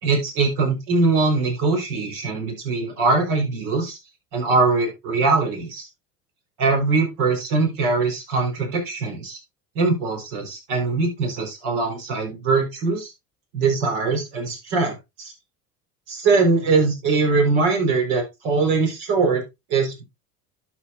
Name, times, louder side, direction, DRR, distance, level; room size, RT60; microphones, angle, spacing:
voice 1, 0.0-4.0 4.3-5.9 6.6-9.4 9.7-13.1 13.5-15.3 16.1-19.4 19.7-20.0, right 3 dB, 65° right, 2 dB, 4.9 m, -22 dB
12.0 x 7.0 x 2.6 m, 0.22 s
hypercardioid pair, 80°, 47 cm